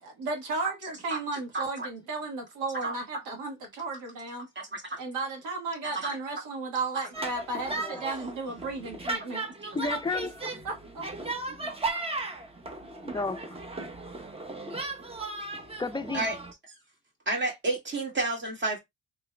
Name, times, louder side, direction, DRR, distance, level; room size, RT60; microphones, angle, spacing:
voice 1, 0.0-4.5 5.0-9.5 10.6-11.3, right 3 dB, 85° right, 1.5 m, -34 dB
voice 2, 1.1-1.9 2.8-2.9 4.6-5.0 5.8-6.2 11.7-11.8 16.1-16.3 17.3-18.8, right 2 dB, 40° right, 1.9 m, -31 dB
sound 1, 7.1-16.5, right 2 dB, 20° right, 0.8 m, -36 dB
voice 3, 7.7-8.1 9.7-10.5 13.0-13.5 15.8-16.3, left 3 dB, 15° left, 0.5 m, -32 dB
3.5 x 3.1 x 2.2 m
cardioid pair, 90°, 30 cm